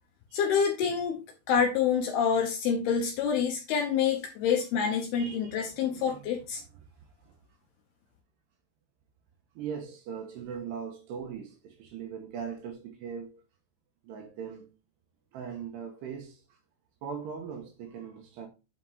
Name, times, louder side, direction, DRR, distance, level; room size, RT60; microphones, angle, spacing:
voice 1, 0.3-1.2 1.5-6.6, left 7 dB, 75° left, 2.4 m, -27 dB
voice 2, 5.2-6.2 7.3-7.4 9.6-13.4 14.0-14.7 15.3-16.4 17.0-18.5, right 7 dB, 75° right, 2.9 m, -40 dB
8.6 x 4.5 x 3.5 m
omnidirectional pair, 5.4 m